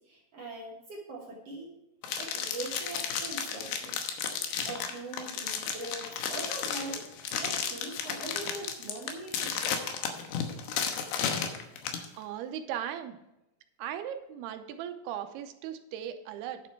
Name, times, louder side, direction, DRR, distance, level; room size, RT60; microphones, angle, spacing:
voice 1, 0.0-1.8 2.2-4.0 4.7-7.1 7.4-9.7, right 2 dB, 55° right, -2 dB, 1.8 m, -41 dB
sound 1, 2.0-12.1, left 7 dB, 90° left, 3.1 m, -33 dB
voice 2, 12.2-13.2 13.8-16.6, right 10 dB, 85° right, 8 dB, 2.8 m, -37 dB
10.0 x 7.6 x 4.5 m, 0.91 s
omnidirectional pair, 4.5 m